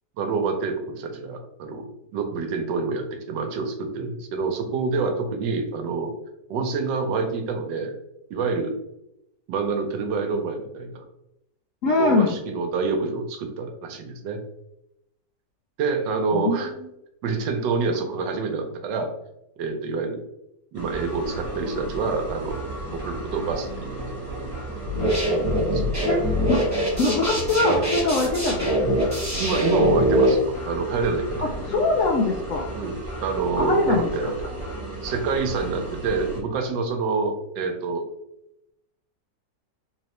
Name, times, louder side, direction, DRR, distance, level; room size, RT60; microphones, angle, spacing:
voice 1, 0.2-1.9 2.1-6.1 6.5-7.9 8.3-8.7 9.5-11.0 12.0-14.4 15.8-16.7 17.2-19.1 19.6-20.2 20.7-24.1 25.4-26.2 28.2-28.3 29.4-31.4 32.7-34.4 35.0-38.0, right 4 dB, 85° right, 5 dB, 1.3 m, -27 dB
voice 2, 11.8-12.3 16.3-16.6 26.1-26.6 27.0-28.5 28.8-29.0 31.7-32.7 33.6-34.0, left 2 dB, 75° left, 0 dB, 0.7 m, -22 dB
sound 1, 20.7-36.4, right 1 dB, 10° left, 0.7 m, -34 dB
sound 2, 24.8-30.3, equal, 10° right, 1.1 m, -23 dB
3.7 x 3.2 x 2.9 m, 0.84 s
omnidirectional pair, 1.9 m